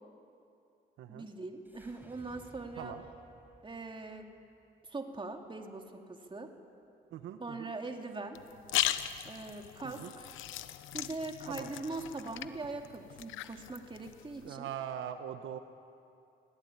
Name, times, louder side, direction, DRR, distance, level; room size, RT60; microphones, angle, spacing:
voice 1, 1.1-2.9 3.6-4.3 4.9-6.5 7.4-8.4 9.3-10.3 10.9-14.7, right 3 dB, 25° right, 4 dB, 2.6 m, -41 dB
sound 1, 1.6-6.0, right 1 dB, 10° right, 5.0 m, -59 dB
voice 2, 7.1-7.7 9.8-10.1 11.5-11.7 14.4-15.6, right 10 dB, 80° right, 9 dB, 1.1 m, -42 dB
sound 2, 8.3-14.5, left 13 dB, 85° left, 0.9 m, -38 dB
24.5 x 18.0 x 9.8 m, 2.7 s
cardioid pair, 90°, 20 cm